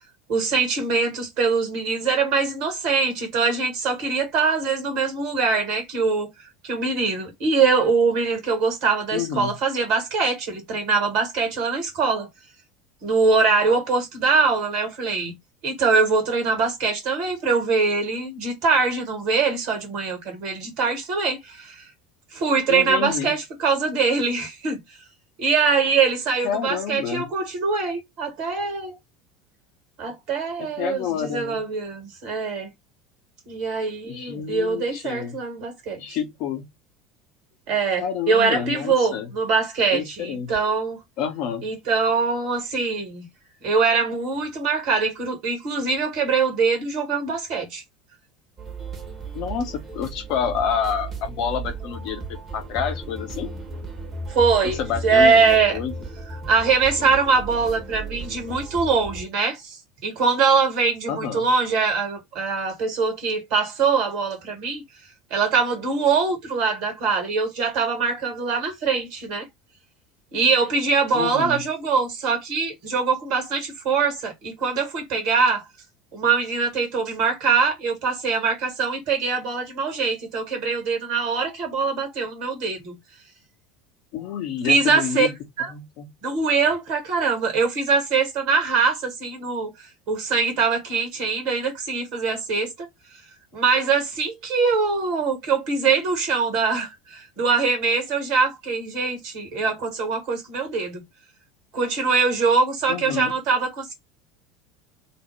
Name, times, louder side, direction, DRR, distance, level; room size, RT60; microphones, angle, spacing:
voice 1, 0.3-6.3 6.6-12.3 13.0-15.3 15.6-21.8 22.3-24.8 25.4-28.9 30.0-32.7 33.5-36.2 37.7-41.0 41.6-43.3 43.6-47.8 54.3-55.8 56.5-64.8 65.3-69.5 70.3-75.6 76.1-82.9 84.6-85.3 85.6-85.7 86.2-89.7 90.1-92.9 93.5-101.0 101.7-103.9, right 4 dB, 55° right, 1.3 m, -23 dB
voice 2, 9.1-9.5 22.7-23.3 26.4-27.3 30.6-31.6 34.1-35.4 36.0-36.7 38.0-39.3 39.9-40.6 41.2-41.7 49.3-53.5 54.6-55.9 57.0-57.1 61.1-61.4 71.1-71.6 84.1-85.3 85.7-86.1 102.9-103.3, left 8 dB, 55° left, 0.7 m, -28 dB
sound 1, 48.6-59.3, right 3 dB, 30° right, 0.9 m, -35 dB
2.6 x 2.1 x 3.1 m
figure-of-eight pair, 70°, 0 cm